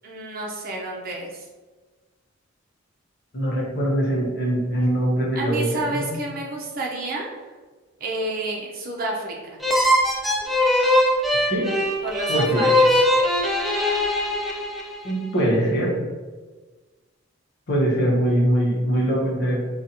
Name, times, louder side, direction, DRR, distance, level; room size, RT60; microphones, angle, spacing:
voice 1, 0.0-1.5 5.3-7.3 8.0-9.6 12.0-12.9, right 2 dB, 45° right, -1 dB, 0.6 m, -30 dB
voice 2, 3.3-6.1 11.4-11.7 12.3-12.7 15.0-16.0 17.7-19.6, right 1 dB, 55° left, -3 dB, 0.9 m, -22 dB
sound 1, 9.6-15.1, left 1 dB, ahead, 0.4 m, -21 dB
3.9 x 2.4 x 2.8 m, 1.3 s
head